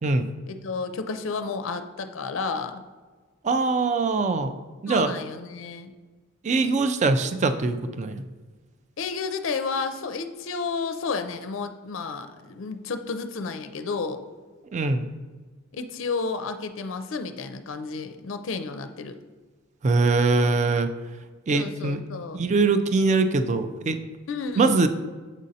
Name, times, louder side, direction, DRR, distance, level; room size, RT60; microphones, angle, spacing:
voice 1, 0.5-2.8 4.9-5.9 9.0-14.2 15.7-19.2 21.5-22.5 24.3-24.7, left 4 dB, 65° left, 8 dB, 0.4 m, -31 dB
voice 2, 3.4-4.5 4.8-5.2 6.4-8.2 14.7-15.1 19.8-20.9 21.5-22.0 22.3-24.0 24.6-24.9, right 3 dB, 35° right, 9 dB, 0.3 m, -22 dB
7.3 x 5.1 x 2.7 m, 1.3 s
head